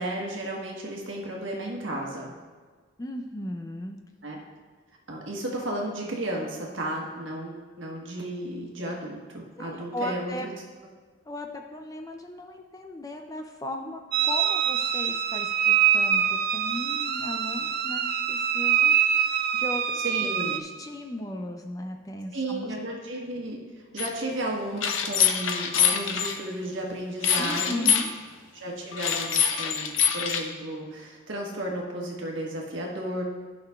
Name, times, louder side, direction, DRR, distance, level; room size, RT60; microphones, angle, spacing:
voice 1, 0.0-2.3 4.2-4.4 5.1-10.3 19.9-20.6 22.3-27.9 28.5-33.2, right 1 dB, 70° right, -1 dB, 1.3 m, -33 dB
voice 2, 3.0-4.0 9.6-10.5 11.3-19.0 19.3-20.0 20.4-22.7 27.4-28.1, left 1 dB, 15° left, 4 dB, 0.4 m, -37 dB
sound 1, 14.1-20.6, right 9 dB, 50° right, 0.4 m, -24 dB
sound 2, 24.0-24.1 24.8-26.3 27.2-28.1 28.9-30.4, left 8 dB, 75° left, 0.6 m, -24 dB
12.0 x 5.8 x 2.4 m, 1.5 s
head